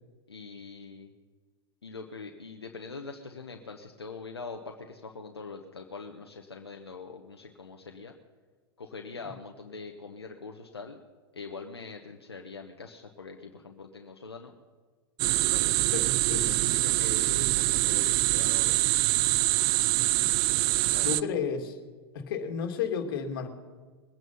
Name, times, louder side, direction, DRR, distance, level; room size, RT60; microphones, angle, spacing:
voice 1, 0.3-1.1 1.8-8.1 8.8-11.0 11.3-14.5 15.5-15.9 16.6-18.9 20.9-21.2, left 4 dB, 90° left, 3 dB, 1.1 m, -43 dB
sound 1, 15.2-21.2, right 20 dB, 40° right, 0.4 m, -25 dB
voice 2, 15.9-16.6 21.0-21.8 22.1-23.5, left 7 dB, 60° left, 5 dB, 2.3 m, -32 dB
22.0 x 9.4 x 5.4 m, 1.4 s
hypercardioid pair, 95°, 13 cm